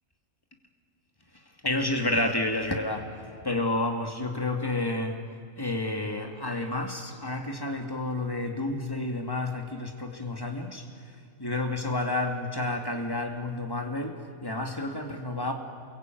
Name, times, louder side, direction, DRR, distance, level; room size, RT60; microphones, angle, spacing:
voice 1, 1.6-3.1 3.4-5.2 5.6-10.9 11.4-15.5, left 2 dB, 15° left, 3 dB, 2.5 m, -30 dB
28.5 x 22.5 x 9.4 m, 2.3 s
omnidirectional pair, 1.3 m